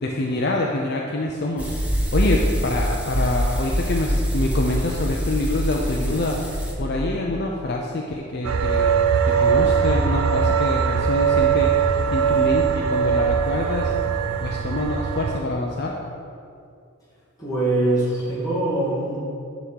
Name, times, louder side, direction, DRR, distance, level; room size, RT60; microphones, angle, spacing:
voice 1, 0.0-1.8 2.1-6.4 6.8-8.9 9.2-11.7 12.1-13.9 14.4-15.9, left 1 dB, 50° left, 0 dB, 0.5 m, -26 dB
sound 1, 1.6-6.7, equal, 5° right, 0.8 m, -24 dB
sound 2, 8.4-15.4, right 6 dB, 75° right, 0.5 m, -21 dB
voice 2, 17.4-19.2, right 2 dB, 15° left, -8 dB, 2.2 m, -23 dB
9.7 x 3.7 x 6.3 m, 2.4 s
head